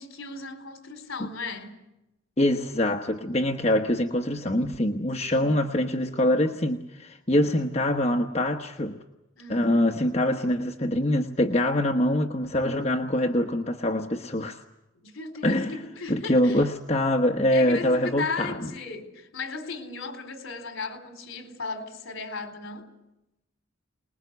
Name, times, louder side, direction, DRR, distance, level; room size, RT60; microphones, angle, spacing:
voice 1, 0.0-1.8 5.3-5.6 9.4-9.9 15.0-16.7 17.5-22.9, left 4 dB, 65° left, 4.0 m, -36 dB
voice 2, 2.4-9.0 9.5-14.6 15.4-15.7 16.1-18.6, left 1 dB, 30° left, 1.1 m, -24 dB
26.0 x 21.0 x 8.1 m
head